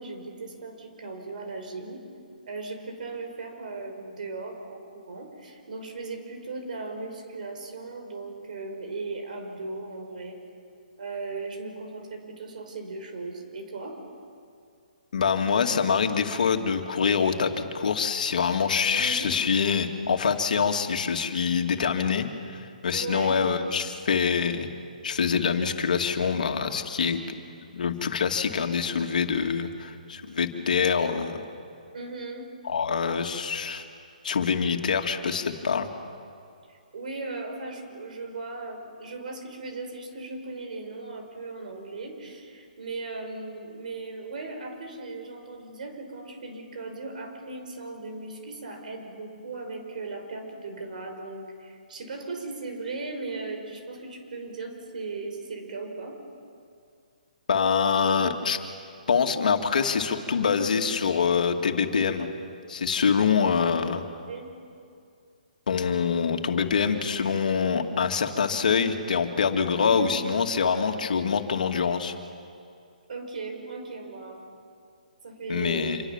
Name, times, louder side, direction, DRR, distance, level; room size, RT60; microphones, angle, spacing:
voice 1, 0.0-2.0 2.5-10.4 11.0-14.0 18.9-19.3 22.9-23.4 31.9-32.5 36.7-56.2 64.3-64.5 69.8-70.2 73.1-74.4 75.2-76.0, right 3 dB, 65° right, 4 dB, 5.5 m, -37 dB
voice 2, 15.1-24.7 25.0-27.2 27.7-31.4 32.6-33.8 34.2-35.9 57.5-58.6 59.1-62.3 62.7-64.0 65.7-72.1 75.5-76.0, left 6 dB, 65° left, 5 dB, 2.4 m, -25 dB
27.0 x 26.0 x 7.3 m, 2.4 s
hypercardioid pair, 145°, 5 cm